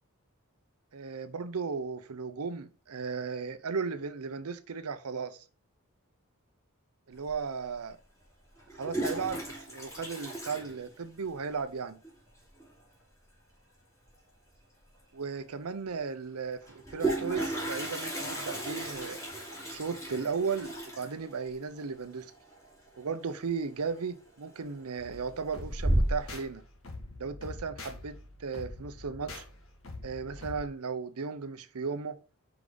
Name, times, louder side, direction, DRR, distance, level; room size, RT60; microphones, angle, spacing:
voice 1, 0.9-5.4 7.1-8.0 8.8-9.4 9.7-12.0 15.1-19.2 19.7-22.3 23.0-26.6 27.2-29.4 30.0-32.2, right 5 dB, 85° right, 0.7 m, -36 dB
Toilet flush, 7.3-7.4 8.6-11.4 11.7-11.8 12.0-12.1 12.4-12.8 14.5-14.6 15.0-15.1 16.6-23.3 23.6-24.0 24.5-25.0 25.4-26.4, right 1 dB, 15° left, 2.9 m, -34 dB
sound 1, 25.0-30.6, left 2 dB, 65° left, 1.5 m, -45 dB
5.1 x 4.8 x 3.8 m
head